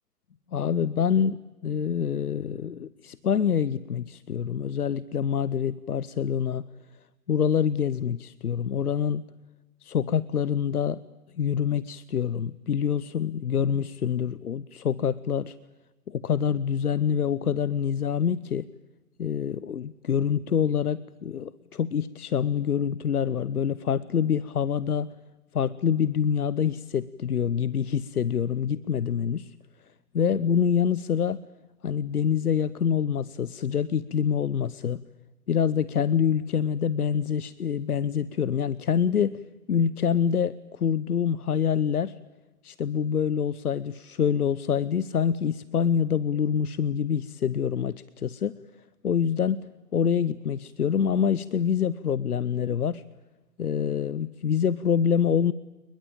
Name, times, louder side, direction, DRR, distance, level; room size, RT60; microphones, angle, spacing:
voice 1, 0.5-6.7 7.3-9.2 9.8-11.0 11.4-15.6 16.1-18.7 19.2-25.1 25.5-29.5 30.1-31.4 31.8-35.0 35.5-39.4 39.7-42.2 42.6-48.6 49.0-49.7 49.9-53.0 53.6-55.5, left 7 dB, 65° left, 19 dB, 0.9 m, -26 dB
29.5 x 21.0 x 9.0 m, 1.2 s
figure-of-eight pair, 145°, 48 cm